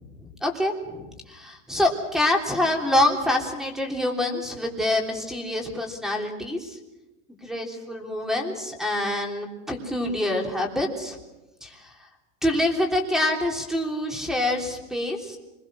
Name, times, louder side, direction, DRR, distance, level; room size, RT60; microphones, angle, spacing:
voice 1, 0.4-6.8 7.4-11.2 11.6-11.8 12.4-15.4, left 1 dB, ahead, 2 dB, 3.3 m, -26 dB
26.5 x 21.5 x 6.3 m, 1.0 s
supercardioid pair, 135°, 37 cm